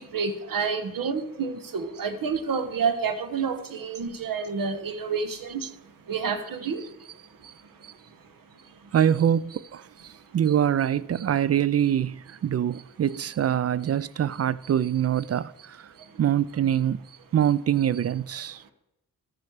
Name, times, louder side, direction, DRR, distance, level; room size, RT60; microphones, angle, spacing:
voice 1, 0.0-6.9 7.4-8.2 8.6-8.9 10.1-10.2 15.9-16.2 18.6-18.7, right 5 dB, 75° right, 1.3 m, -30 dB
voice 2, 8.9-9.8 10.3-12.2 12.4-15.5 16.2-17.0 17.3-18.6, right 10 dB, 45° right, 0.4 m, -24 dB
13.5 x 7.2 x 4.8 m
cardioid pair, 55°, 34 cm